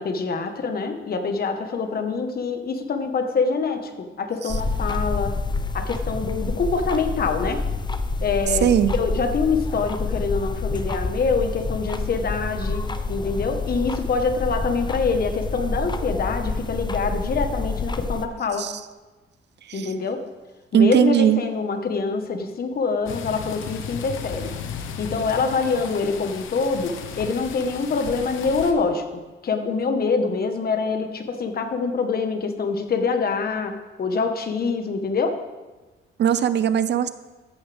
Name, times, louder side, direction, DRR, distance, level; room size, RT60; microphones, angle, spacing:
voice 1, 0.0-5.4 5.7-7.6 8.2-8.7 9.0-18.7 19.7-20.2 20.7-24.5 25.0-35.4, left 4 dB, 50° left, 6 dB, 1.4 m, -25 dB
sound 1, 4.5-18.3, left 3 dB, 20° left, 0.8 m, -28 dB
voice 2, 8.6-8.9 18.6-18.8 19.6-19.9 20.7-21.4 36.2-37.1, right 9 dB, 60° right, 13 dB, 0.7 m, -19 dB
sound 2, 23.1-28.7, left 7 dB, 85° left, 1.2 m, -35 dB
14.0 x 10.0 x 3.5 m, 1.2 s
cardioid pair, 90°, 20 cm